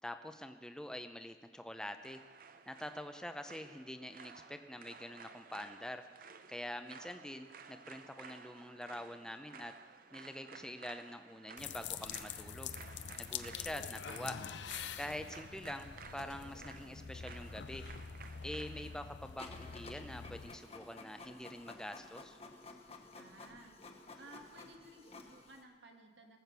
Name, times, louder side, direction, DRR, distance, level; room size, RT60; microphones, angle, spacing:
voice 1, 0.0-2.2 2.7-6.0 6.5-9.7 10.1-12.8 13.2-14.4 15.0-17.8 18.4-22.4, left 1 dB, 5° left, 8 dB, 0.6 m, -45 dB
sound 1, 2.0-19.1, right 5 dB, 50° right, 0.7 m, -55 dB
sound 2, 11.6-20.6, left 7 dB, 80° left, 0.6 m, -46 dB
Printer, 19.4-25.6, left 3 dB, 35° left, 1.1 m, -53 dB
voice 2, 23.2-23.8 24.2-26.4, right 1 dB, 85° right, 3 dB, 1.8 m, -56 dB
18.5 x 7.8 x 6.8 m, 1.5 s
head